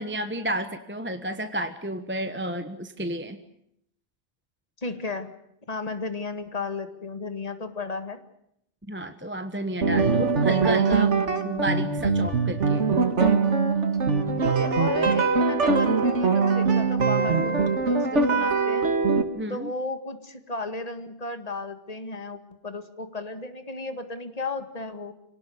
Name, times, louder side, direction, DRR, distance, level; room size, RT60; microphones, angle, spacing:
voice 1, 0.0-3.4 8.9-11.1 11.4-12.8 19.3-19.7, right 1 dB, 10° right, 8 dB, 1.1 m, -31 dB
voice 2, 4.8-5.3 5.7-8.2 9.6-9.8 14.3-18.9 19.5-25.1, left 3 dB, 35° left, 9 dB, 2.0 m, -34 dB
sound 1, 9.8-19.2, right 4 dB, 80° right, 2.1 m, -22 dB
26.0 x 18.0 x 9.4 m, 0.75 s
omnidirectional pair, 1.2 m